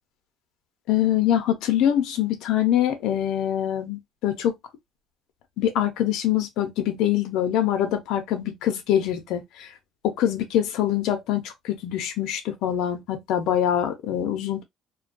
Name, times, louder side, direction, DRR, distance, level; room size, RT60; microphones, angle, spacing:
voice 1, 0.9-4.5 5.6-9.7 10.0-14.6, left 11 dB, 75° left, 0.6 m, -24 dB
2.2 x 2.2 x 2.5 m
cardioid pair, 140°, 0 cm